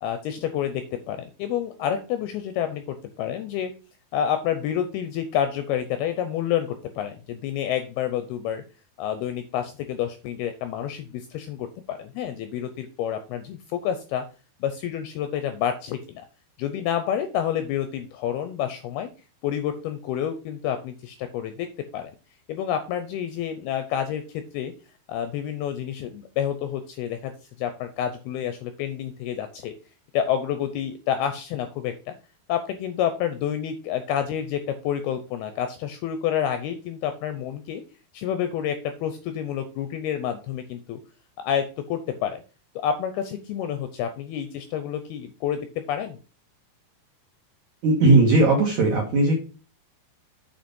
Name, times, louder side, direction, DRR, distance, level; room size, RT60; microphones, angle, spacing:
voice 1, 0.0-3.7 4.1-8.6 9.0-14.2 14.6-16.2 16.6-19.1 19.4-22.1 22.5-24.7 25.1-27.3 27.6-29.7 30.1-32.2 32.5-37.8 38.1-41.0 41.4-42.4 42.8-46.2, left 9 dB, 80° left, 9 dB, 2.3 m, -29 dB
voice 2, 47.8-49.4, right 2 dB, 60° right, -1 dB, 2.0 m, -18 dB
7.9 x 4.7 x 5.2 m, 0.35 s
omnidirectional pair, 5.1 m